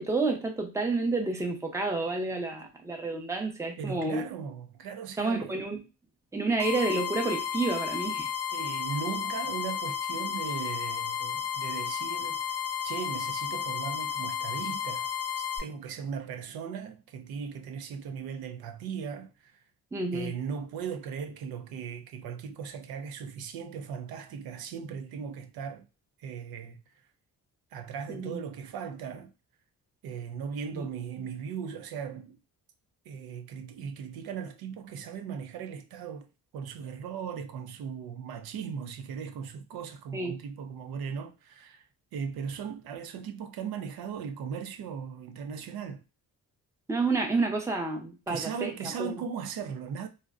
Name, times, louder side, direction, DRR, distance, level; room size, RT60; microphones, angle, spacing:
voice 1, 0.0-4.3 5.2-5.8 6.3-8.3 19.9-20.3 28.1-28.4 30.7-30.9 40.1-40.3 46.9-48.7 49.0-49.1, right 3 dB, 10° right, 0.5 m, -29 dB
voice 2, 3.8-5.9 8.5-12.6 12.8-19.6 20.1-25.9 26.2-26.8 27.7-29.3 30.0-32.4 33.1-36.3 36.5-41.8 42.1-46.0 48.3-50.1, right 7 dB, 85° right, 0.5 m, -38 dB
sound 1, 6.6-15.6, left 9 dB, 40° left, 0.6 m, -33 dB
2.5 x 2.1 x 2.4 m
cardioid pair, 115°, 35 cm